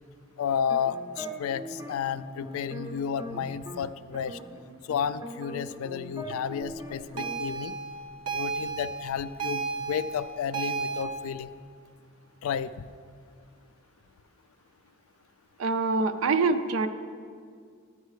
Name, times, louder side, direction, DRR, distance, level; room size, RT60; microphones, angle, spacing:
voice 1, 0.4-4.4 4.9-7.7 8.3-11.5 12.4-12.9, left 7 dB, 75° left, 15 dB, 0.3 m, -32 dB
sound 1, 0.5-3.8 4.1-7.4, equal, 15° right, 0.5 m, -41 dB
sound 2, 7.2-11.0, right 5 dB, 85° right, 0.9 m, -33 dB
voice 2, 15.6-16.9, right 3 dB, 65° right, 9 dB, 0.4 m, -25 dB
11.0 x 9.1 x 3.2 m, 2.2 s
head